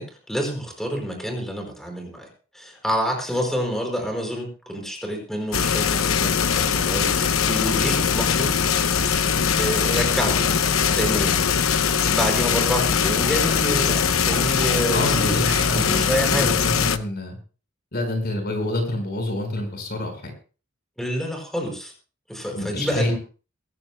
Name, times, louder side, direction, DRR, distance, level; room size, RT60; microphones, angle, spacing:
voice 1, 0.0-2.3 2.5-8.6 9.5-10.5 10.9-11.4 12.0-15.4 15.7-16.6 21.0-21.9 22.3-23.2, equal, ahead, 2 dB, 5.1 m, -28 dB
sound 1, 5.5-17.0, left 7 dB, 80° left, 0.9 m, -21 dB
sound 2, 7.7-8.1 9.2-12.5 12.9-15.0 15.3-15.7, right 2 dB, 20° right, 4.2 m, -40 dB
voice 2, 14.9-17.4 17.9-20.3 22.5-23.1, left 1 dB, 50° left, 5 dB, 5.0 m, -27 dB
23.0 x 15.5 x 2.2 m, 0.36 s
head